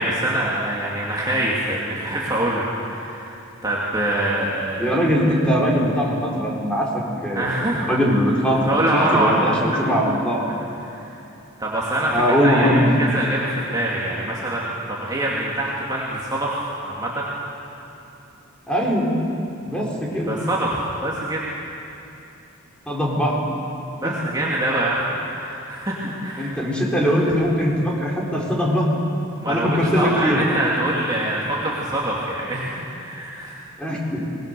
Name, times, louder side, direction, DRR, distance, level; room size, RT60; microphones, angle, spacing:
voice 1, 0.0-3.4 3.6-5.0 7.3-7.8 8.6-9.8 10.8-11.1 11.6-12.7 13.0-17.3 20.1-21.4 23.9-25.0 25.3-26.5 27.0-27.1 29.3-33.6, right 1 dB, 20° right, -5 dB, 2.5 m, -24 dB
voice 2, 4.8-7.5 7.9-10.4 12.1-12.9 18.7-19.1 19.6-20.4 22.9-23.4 24.0-24.1 26.4-28.8 29.5-30.4 33.8-34.2, equal, 5° left, -3 dB, 4.5 m, -21 dB
24.5 x 20.5 x 6.9 m, 2.9 s
head